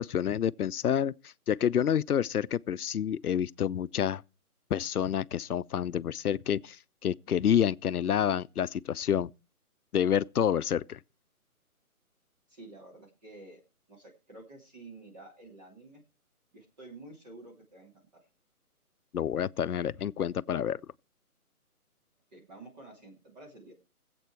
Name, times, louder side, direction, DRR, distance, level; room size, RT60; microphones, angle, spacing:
voice 1, 0.0-4.2 4.7-9.3 9.9-11.0 19.1-20.8, left 9 dB, 80° left, 0.7 m, -28 dB
voice 2, 12.5-13.6 13.9-16.0 16.5-18.2 22.3-23.7, right 2 dB, 30° right, 3.1 m, -50 dB
20.5 x 8.0 x 4.6 m
hypercardioid pair, 170°, 44 cm